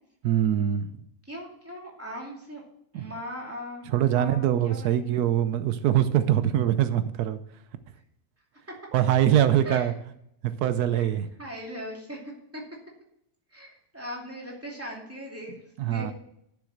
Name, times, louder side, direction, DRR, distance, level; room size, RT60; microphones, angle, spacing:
voice 1, 0.2-0.9 2.9-3.1 3.9-7.4 8.9-9.9 10.6-11.3 15.8-16.1, right 11 dB, 85° right, 11 dB, 1.2 m, -23 dB
voice 2, 1.2-2.6 2.9-5.0 8.7-8.8 9.6-9.9 10.9-11.1 11.4-12.6 13.5-16.1, equal, 10° right, -2 dB, 2.6 m, -39 dB
9.8 x 7.0 x 6.4 m, 0.76 s
omnidirectional pair, 1.6 m